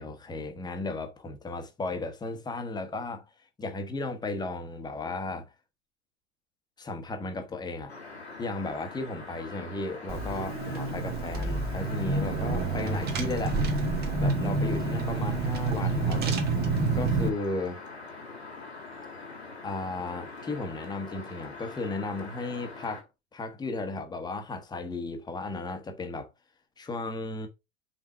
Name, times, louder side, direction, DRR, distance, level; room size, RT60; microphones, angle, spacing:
voice 1, 0.0-3.3 3.6-5.5 6.8-7.9 8.4-13.6 14.2-16.4 16.9-17.8 19.6-23.1 23.3-26.3 26.8-27.5, left 2 dB, 15° left, 1.4 m, -35 dB
sound 1, 7.9-23.0, left 3 dB, 80° left, 2.2 m, -44 dB
Car / Engine, 10.1-17.3, right 3 dB, 30° right, 1.6 m, -28 dB
5.8 x 4.9 x 4.6 m
figure-of-eight pair, 85°, 32 cm